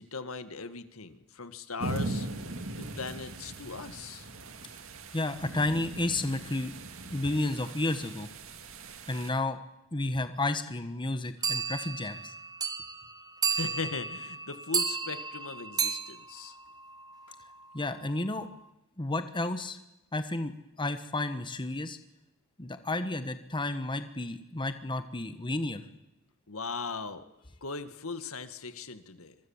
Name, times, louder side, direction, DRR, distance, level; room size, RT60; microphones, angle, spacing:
voice 1, 0.0-2.3 2.8-4.3 13.5-16.6 26.5-27.2 27.6-29.4, left 4 dB, 80° left, 10 dB, 1.9 m, -39 dB
sound 1, 1.8-9.3, right 2 dB, 70° right, 2.4 m, -40 dB
voice 2, 5.1-6.7 7.1-8.3 9.1-9.6 9.9-12.3 17.7-18.5 19.0-19.8 20.1-20.5 20.8-22.0 22.6-25.8, left 2 dB, 25° left, 9 dB, 1.3 m, -31 dB
sound 2, 11.4-17.3, right 5 dB, 20° right, 1.4 m, -33 dB
26.0 x 23.5 x 7.3 m, 0.91 s
head